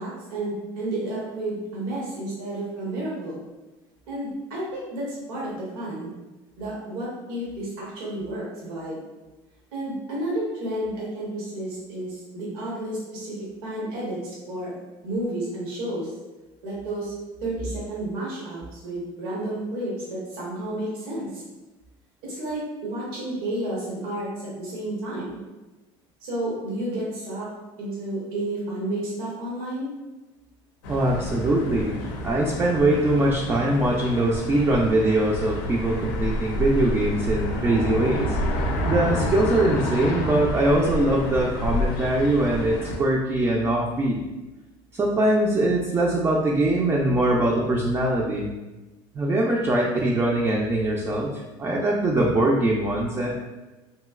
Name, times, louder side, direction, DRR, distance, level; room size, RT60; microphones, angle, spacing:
voice 1, 0.0-3.4 4.1-6.1 6.6-9.0 9.7-13.3 13.6-14.7 15.0-16.1 16.6-17.1 17.4-21.4 22.2-25.3 26.2-27.5 27.8-29.9, right 1 dB, 90° right, -5 dB, 0.9 m, -31 dB
Straße ruhig mit Vögeln Hunden Auto, 30.8-43.0, left 1 dB, 85° left, 0.5 m, -29 dB
voice 2, 30.9-32.0 32.2-38.4 38.9-44.2 44.9-48.5 49.1-53.3, right 1 dB, 20° right, -2 dB, 0.4 m, -22 dB
3.0 x 2.7 x 2.3 m, 1.1 s
supercardioid pair, 115°, 12 cm